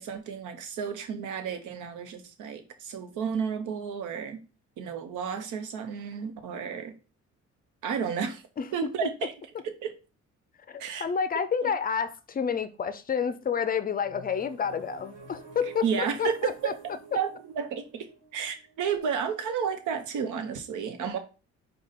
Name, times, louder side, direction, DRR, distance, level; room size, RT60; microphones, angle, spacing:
voice 1, 0.0-4.4 4.8-6.9 7.8-8.4 8.7-9.3 9.6-9.9 10.8-11.0 11.6-11.7 15.8-16.7 17.1-21.2, right 7 dB, 80° right, 0.9 m, -32 dB
voice 2, 8.6-9.1 10.7-15.9 16.2-16.7, left 7 dB, 30° left, 0.5 m, -29 dB
sound 1, 14.0-19.8, right 4 dB, 40° right, 2.2 m, -48 dB
5.0 x 2.4 x 4.0 m
cardioid pair, 90°, 30 cm